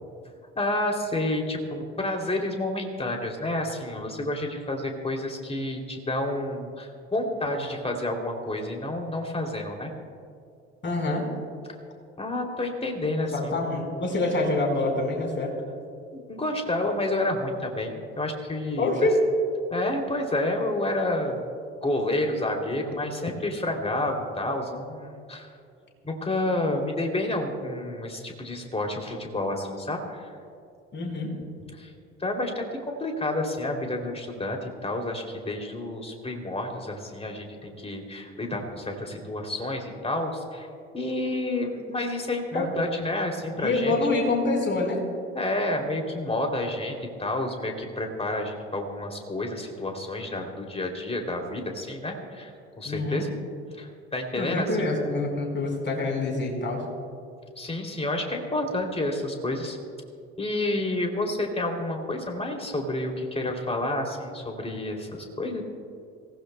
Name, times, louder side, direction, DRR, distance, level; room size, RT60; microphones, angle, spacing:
voice 1, 0.6-9.9 12.2-13.6 16.1-19.1 19.7-21.4 21.8-25.5 26.0-30.2 31.8-31.9 32.2-32.7 33.0-40.7 40.9-43.9 45.3-53.3 53.8-54.9 57.6-59.8 60.4-65.6, left 1 dB, 20° left, 2 dB, 2.9 m, -29 dB
voice 2, 10.8-11.2 13.2-15.5 18.8-19.2 30.9-31.3 42.5-42.7 43.6-45.0 52.8-53.3 54.3-56.8, left 2 dB, 35° left, 1 dB, 4.5 m, -26 dB
26.5 x 16.0 x 2.2 m, 2.4 s
hypercardioid pair, 55°, 34 cm